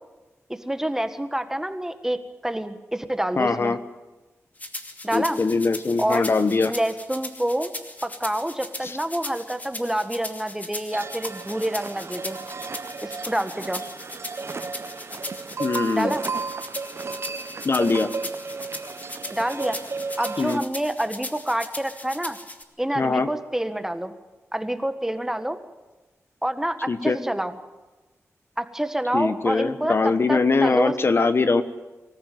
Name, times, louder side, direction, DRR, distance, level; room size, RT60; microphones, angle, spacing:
voice 1, 0.5-3.8 5.0-5.4 6.0-6.3 6.6-7.7 8.0-12.4 13.0-13.8 15.9-16.2 19.3-19.8 20.2-22.4 22.8-24.1 24.5-25.6 26.4-27.6 28.6-31.0, right 1 dB, 10° right, 9 dB, 1.7 m, -27 dB
voice 2, 3.4-3.8 5.1-6.7 8.8-8.9 15.6-16.1 17.6-18.1 20.4-20.6 22.9-23.3 26.9-27.2 29.1-31.6, left 4 dB, 50° left, 11 dB, 1.1 m, -22 dB
sound 1, 4.6-22.6, left 2 dB, 30° left, 2.6 m, -38 dB
sound 2, 10.9-20.6, right 4 dB, 55° right, 0.8 m, -34 dB
25.0 x 14.5 x 9.3 m, 1.2 s
cardioid pair, 70°, 5 cm